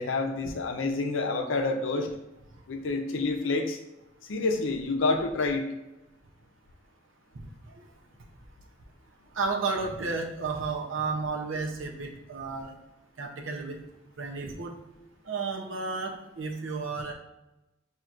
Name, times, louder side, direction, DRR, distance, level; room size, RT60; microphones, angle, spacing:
voice 1, 0.0-2.1 2.7-3.8 4.3-5.7, left 3 dB, 75° left, 5 dB, 0.5 m, -28 dB
voice 2, 9.4-12.7 13.2-13.8 14.2-14.7 15.3-17.1, right 4 dB, 80° right, 2 dB, 0.6 m, -32 dB
5.8 x 2.8 x 2.5 m, 0.95 s
head